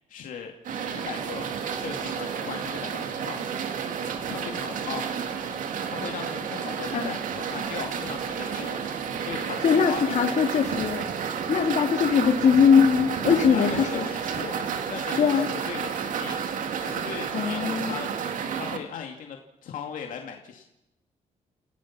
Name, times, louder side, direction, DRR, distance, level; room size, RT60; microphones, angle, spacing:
voice 1, 0.1-0.5 0.9-1.5 1.8-3.4 4.3-5.0 5.9-8.8 9.2-10.8 13.3-14.6 14.9-16.4 16.8-18.1 18.5-20.7, left 7 dB, 85° left, 3 dB, 2.4 m, -38 dB
sound 1, 0.6-18.8, right 7 dB, 80° right, 2.2 m, -31 dB
voice 2, 9.6-11.0 11.5-14.1 15.2-15.5 17.3-18.0, left 6 dB, 65° left, 4 dB, 3.2 m, -21 dB
29.0 x 16.5 x 6.0 m, 0.86 s
cardioid pair, 135°, 13 cm